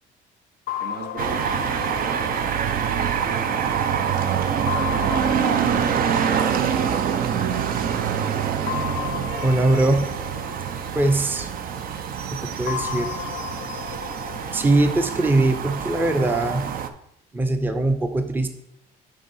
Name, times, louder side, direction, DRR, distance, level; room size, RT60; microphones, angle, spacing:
sound 1, 0.7-4.0 4.7-7.6 8.7-11.8 12.7-15.8, left 11 dB, 60° left, 0.4 m, -35 dB
voice 1, 0.8-6.1 6.4-6.9, right 4 dB, 75° right, 4 dB, 1.4 m, -39 dB
sound 2, 1.2-16.9, right 8 dB, 60° right, 0.6 m, -25 dB
voice 2, 9.4-10.1 10.9-11.5 12.3-13.1 14.5-16.7 17.3-18.5, right 2 dB, 10° right, 7 dB, 0.6 m, -21 dB
6.7 x 3.9 x 5.4 m, 0.77 s
cardioid pair, 110°, 17 cm